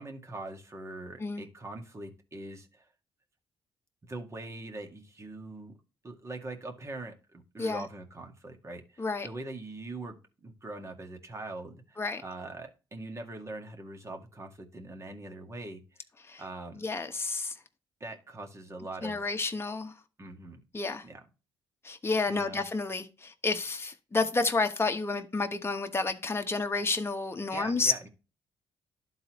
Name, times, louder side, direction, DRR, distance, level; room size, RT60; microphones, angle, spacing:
voice 1, 0.0-2.9 4.0-5.7 6.0-15.8 16.4-16.8 18.0-19.2 20.2-20.6 21.0-21.2 22.3-22.6 27.5-28.1, right 2 dB, 30° right, 2.0 m, -42 dB
voice 2, 16.7-17.6 19.0-19.9 20.7-21.0 21.8-27.9, left 3 dB, 25° left, 1.2 m, -30 dB
11.5 x 4.0 x 3.1 m
supercardioid pair, 70°, 10 cm